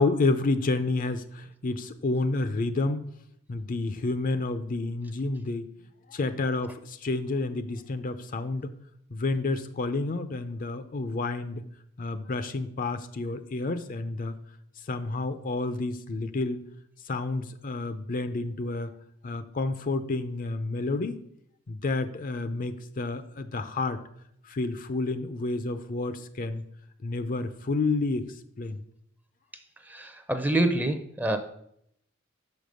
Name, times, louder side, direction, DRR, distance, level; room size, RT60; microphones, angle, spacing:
voice 1, 0.0-3.0 3.5-5.7 6.1-8.7 9.1-11.6 12.0-14.3 14.9-16.6 17.1-18.9 19.2-21.2 21.7-24.0 24.5-26.6 27.0-28.3 28.6-28.8, left 3 dB, 40° left, 11 dB, 0.5 m, -29 dB
voice 2, 29.9-31.4, right 1 dB, 10° right, 8 dB, 0.6 m, -26 dB
6.0 x 5.2 x 6.3 m, 0.73 s
head